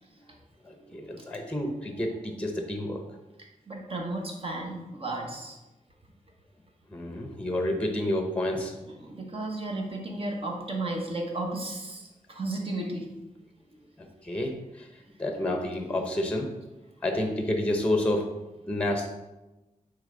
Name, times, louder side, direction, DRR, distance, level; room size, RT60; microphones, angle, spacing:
voice 1, 0.7-3.0 6.9-8.7 14.2-14.9 15.2-16.5 17.0-18.4 18.6-19.1, left 1 dB, 10° left, 3 dB, 0.8 m, -29 dB
voice 2, 3.7-5.6 8.9-13.1 13.7-13.8, right 2 dB, 45° right, 1 dB, 1.2 m, -34 dB
8.7 x 3.5 x 3.8 m, 1.0 s
wide cardioid pair, 115°, 14 cm